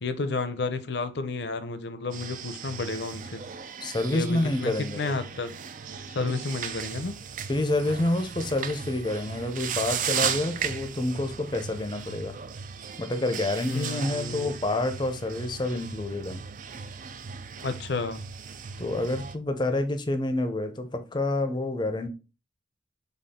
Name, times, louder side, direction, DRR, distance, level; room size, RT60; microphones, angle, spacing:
voice 1, 0.0-3.4 4.1-5.5 6.1-7.2 13.7-14.5 17.6-18.2, left 3 dB, 65° left, 0.6 m, -31 dB
sound 1, 2.1-19.4, right 7 dB, 45° right, 0.4 m, -36 dB
voice 2, 3.8-5.1 6.2-6.3 7.5-12.3 13.0-16.4 18.8-22.1, left 2 dB, 25° left, 0.6 m, -28 dB
4.2 x 3.5 x 3.5 m
head